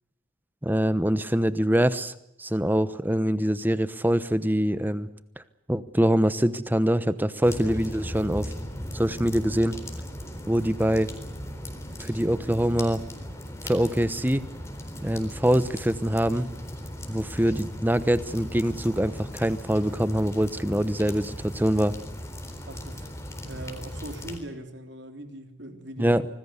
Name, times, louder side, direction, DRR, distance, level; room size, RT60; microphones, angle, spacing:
voice 1, 0.6-2.1 2.4-5.1 5.7-8.5 8.9-9.7 10.5-11.1 12.0-13.0 13.6-14.4 15.0-16.5 17.1-21.9 26.0-26.3, equal, 10° right, 14 dB, 1.0 m, -24 dB
sound 1, 7.4-24.4, equal, 15° left, 4.0 m, -38 dB
voice 2, 22.7-23.0 23.4-26.2, right 1 dB, 55° right, 6 dB, 3.6 m, -40 dB
26.0 x 20.0 x 8.2 m, 0.83 s
head